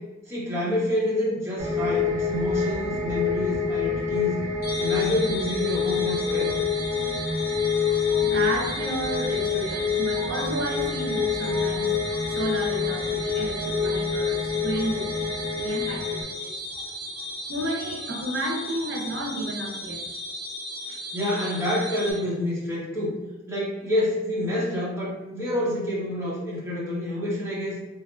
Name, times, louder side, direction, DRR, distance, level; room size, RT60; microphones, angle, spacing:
voice 1, 0.3-4.4 4.8-6.6 10.9-11.1 20.9-23.1 23.5-27.8, left 1 dB, 15° right, -8 dB, 0.9 m, -28 dB
sound 1, 1.6-16.2, left 6 dB, 40° right, 0.6 m, -27 dB
sound 2, 4.6-22.1, left 1 dB, 45° left, 1.1 m, -36 dB
voice 2, 7.9-20.2, right 1 dB, 85° right, 0 dB, 0.5 m, -32 dB
3.3 x 2.5 x 2.4 m, 1.1 s
head